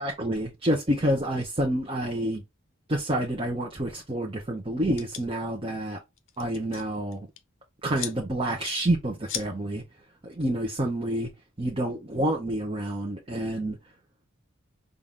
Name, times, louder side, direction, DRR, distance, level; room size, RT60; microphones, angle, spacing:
voice 1, 0.0-2.4 2.9-6.0 6.4-7.3 7.8-9.8 10.2-11.3 11.6-13.8, right 1 dB, 25° right, 0.8 m, -28 dB
sound 1, 5.0-5.2 6.2-6.8 7.1-7.4 7.9-8.1 8.6-8.8 9.3-9.5, left 9 dB, 60° left, 0.6 m, -35 dB
5.7 x 2.5 x 3.5 m
head